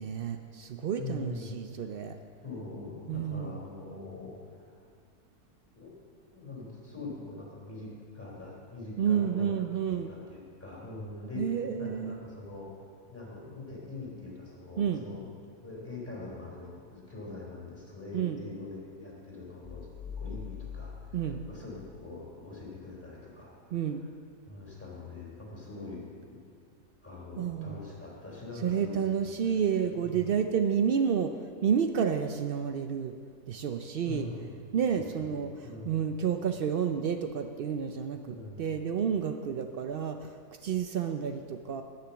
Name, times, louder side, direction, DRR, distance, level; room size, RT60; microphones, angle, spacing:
voice 1, 0.0-2.2 3.1-3.6 9.0-10.1 11.4-12.2 14.8-15.0 18.1-18.4 21.1-21.4 23.7-24.0 27.4-27.8 28.6-31.3 31.6-33.1 33.5-34.3 34.7-35.5 35.9-40.3 40.6-41.8, right 7 dB, 85° right, 7 dB, 0.5 m, -30 dB
voice 2, 1.0-1.9 2.4-4.7 5.7-5.9 6.3-12.7 13.1-15.3 15.6-19.9 20.2-24.1 24.5-26.4 27.0-29.4 29.8-30.3 34.1-34.6 34.9-36.0 38.2-38.8, left 3 dB, 10° left, -4 dB, 3.5 m, -43 dB
sound 1, 19.6-22.3, left 6 dB, 40° left, 0.7 m, -43 dB
10.0 x 9.8 x 7.0 m, 2.1 s
omnidirectional pair, 1.6 m